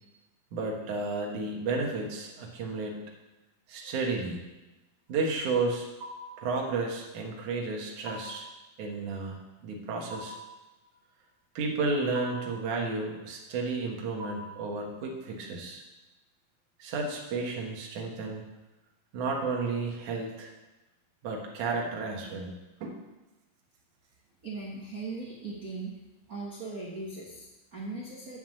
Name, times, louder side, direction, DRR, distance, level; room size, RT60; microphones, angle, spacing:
voice 1, 0.5-3.0 3.7-4.4 5.1-5.9 6.4-8.5 8.8-10.4 11.6-15.8 16.8-18.5 19.1-20.5 21.2-22.5 22.8-23.0, right 3 dB, 65° right, 0 dB, 2.8 m, -32 dB
sound 1, 6.0-6.5 8.1-8.5 10.1-10.6 12.1-12.6 14.2-14.7, equal, 35° right, 3.2 m, -42 dB
voice 2, 24.4-25.9 26.3-28.4, right 3 dB, 80° right, -4 dB, 0.8 m, -39 dB
9.3 x 5.9 x 7.5 m, 1.1 s
omnidirectional pair, 4.1 m